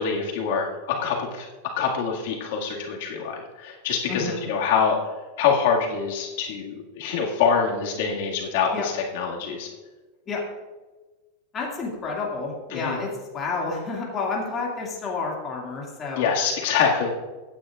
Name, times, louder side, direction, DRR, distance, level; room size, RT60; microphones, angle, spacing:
voice 1, 0.0-1.5 1.8-5.0 5.4-9.7 12.7-13.0 16.2-17.1, left 6 dB, 65° left, -1 dB, 1.9 m, -25 dB
voice 2, 4.1-4.4 8.7-8.9 10.3-10.4 11.5-16.3, left 4 dB, 20° left, -3 dB, 2.1 m, -30 dB
16.0 x 9.6 x 2.4 m, 1.2 s
supercardioid pair, 160°, 0 cm